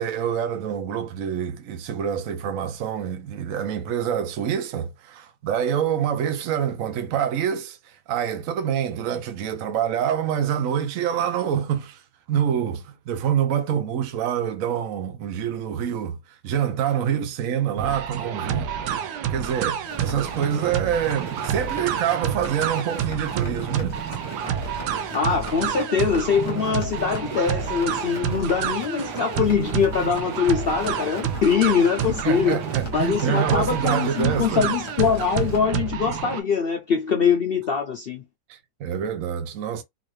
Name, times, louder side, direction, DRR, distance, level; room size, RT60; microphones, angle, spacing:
voice 1, 0.0-12.0 12.3-16.2 16.4-19.0 19.3-24.0 32.1-34.7 38.5-39.8, right 9 dB, 65° right, 1.0 m, -26 dB
sound 1, 17.8-36.4, right 8 dB, 85° right, 1.2 m, -29 dB
sound 2, 19.8-35.6, left 2 dB, 20° left, 1.0 m, -41 dB
voice 2, 25.1-32.6 32.9-38.2, left 6 dB, 75° left, 0.5 m, -23 dB
4.0 x 2.5 x 3.2 m
omnidirectional pair, 1.7 m